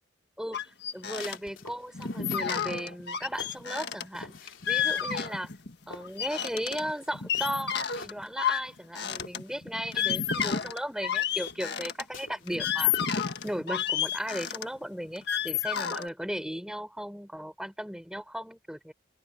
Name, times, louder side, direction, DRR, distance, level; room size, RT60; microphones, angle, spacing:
voice 1, 0.4-5.5 5.9-13.1 13.4-18.9, equal, 5° right, 4.4 m, -36 dB
sound 1, 0.5-1.4 1.6-1.7 1.9-5.7 6.0-12.0 12.5-16.1, left 8 dB, 55° left, 1.8 m, -30 dB
sound 2, 1.0-2.5 3.0-5.3 5.5-8.9 9.1-14.2, left 3 dB, 80° left, 3.1 m, -48 dB
open air
head